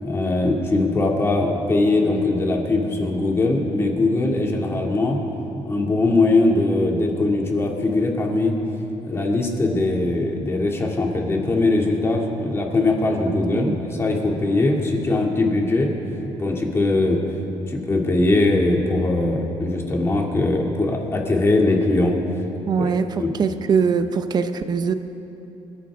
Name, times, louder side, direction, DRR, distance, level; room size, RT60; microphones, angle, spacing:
voice 1, 0.0-5.2 5.6-8.6 9.0-15.9 16.4-17.2 17.7-22.1 22.8-22.9 23.2-23.3, left 2 dB, 25° left, 0 dB, 2.3 m, -21 dB
voice 2, 13.3-13.8 22.7-24.9, right 6 dB, 40° right, 9 dB, 0.8 m, -22 dB
26.0 x 14.5 x 3.6 m, 3.0 s
cardioid pair, 130°, 11 cm